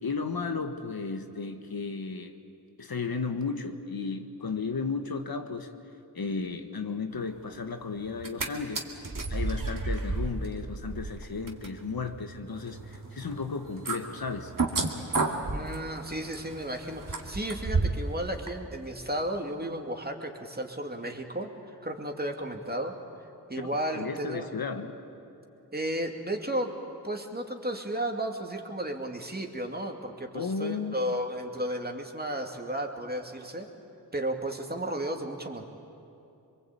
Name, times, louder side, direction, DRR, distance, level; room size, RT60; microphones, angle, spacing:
voice 1, 0.0-2.4 2.8-5.7 6.1-8.9 9.3-14.5 23.9-24.9 30.3-30.9, left 4 dB, 65° left, 6 dB, 1.4 m, -34 dB
sound 1, 8.1-8.5 8.7-18.1 18.5-18.6, right 3 dB, 55° right, 2.2 m, -32 dB
voice 2, 15.5-23.0 23.5-24.5 25.7-26.8 27.0-33.7 34.1-35.6, right 1 dB, 25° right, 3 dB, 2.5 m, -33 dB
23.0 x 22.5 x 8.5 m, 2.7 s
cardioid pair, 40°, 38 cm